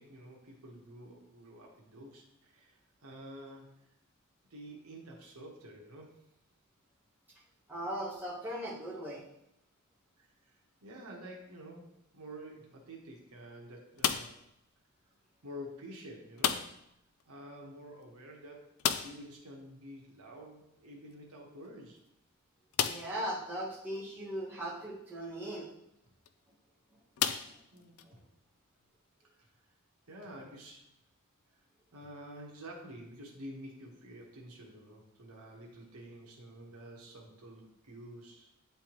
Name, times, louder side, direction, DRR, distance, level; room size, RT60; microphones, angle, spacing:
voice 1, 0.0-3.9 4.5-6.2 10.2-14.4 15.4-16.7 17.3-22.0 27.7-28.3 29.2-29.5 30.1-30.9 31.9-38.5, equal, 85° right, -1 dB, 1.2 m, -49 dB
voice 2, 7.7-9.2 22.8-25.7, right 1 dB, 10° right, -8 dB, 1.7 m, -38 dB
sound 1, 14.0-14.5 16.4-16.9 17.2-17.3 17.6-17.7 18.8-19.3 21.1-21.2 21.8-21.9 22.7-23.2 24.0-24.1 26.1-26.3 27.2-28.1, left 9 dB, 70° left, 0.4 m, -32 dB
9.2 x 3.4 x 3.0 m, 0.81 s
head